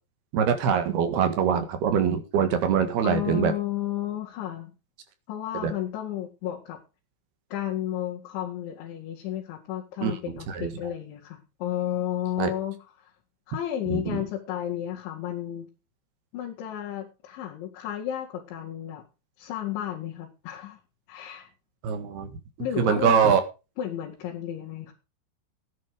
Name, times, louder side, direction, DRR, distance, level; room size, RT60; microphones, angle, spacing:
voice 1, 0.3-3.5 5.6-5.7 10.0-10.2 10.5-10.7 12.4-12.5 13.9-14.2 21.8-22.3 22.8-23.4, right 7 dB, 65° right, 8 dB, 3.4 m, -23 dB
voice 2, 3.0-4.7 5.3-6.8 7.5-13.1 13.5-15.7 16.3-19.0 19.4-20.8 21.1-21.5 22.6-23.4 23.8-24.9, left 11 dB, 75° left, -2 dB, 4.4 m, -32 dB
14.5 x 10.5 x 5.1 m, 0.31 s
omnidirectional pair, 5.4 m